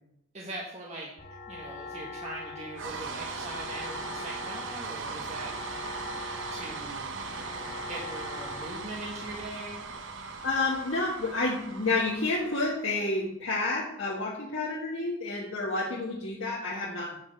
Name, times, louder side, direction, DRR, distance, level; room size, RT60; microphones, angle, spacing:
voice 1, 0.3-5.5 6.5-9.8, right 1 dB, 30° right, -3 dB, 1.3 m, -41 dB
sound 1, 1.2-9.4, left 3 dB, 40° left, 1.5 m, -43 dB
sound 2, 2.7-13.0, right 4 dB, 65° right, 0.9 m, -39 dB
voice 2, 10.4-17.2, left 2 dB, 70° left, -5 dB, 1.7 m, -30 dB
9.3 x 5.0 x 6.7 m, 0.78 s
head